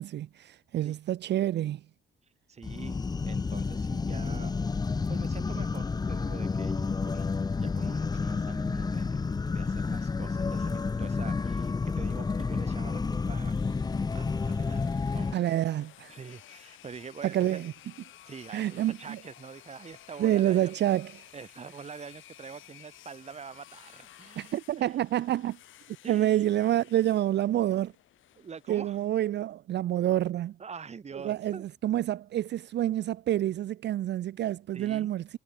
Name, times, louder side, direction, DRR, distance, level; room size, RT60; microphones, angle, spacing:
voice 1, 0.0-1.8 15.3-16.1 17.2-17.7 18.5-19.2 20.2-21.3 24.4-25.6 26.1-27.9 28.7-30.6 31.2-35.4, right 12 dB, 60° right, 0.5 m, -28 dB
voice 2, 2.5-4.5 5.1-9.2 9.5-13.6 14.1-14.8 15.1-15.7 16.1-17.6 18.2-20.7 21.3-24.9 26.0-26.5 28.3-29.0 30.6-31.6 34.7-35.1, right 6 dB, 35° right, 1.1 m, -45 dB
sound 1, 2.6-15.3, left 4 dB, 20° left, 0.5 m, -30 dB
sound 2, 13.1-29.1, left 13 dB, 80° left, 7.5 m, -54 dB
cardioid pair, 90°, 20 cm